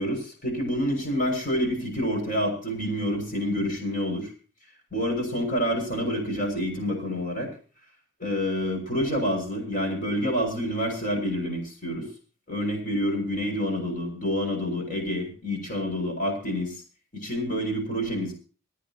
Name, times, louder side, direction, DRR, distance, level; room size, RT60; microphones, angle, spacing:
voice 1, 0.0-4.3 4.9-7.5 8.2-12.1 12.5-16.7 17.2-18.3, equal, 40° left, 2 dB, 6.4 m, -28 dB
28.0 x 9.7 x 2.9 m, 0.37 s
head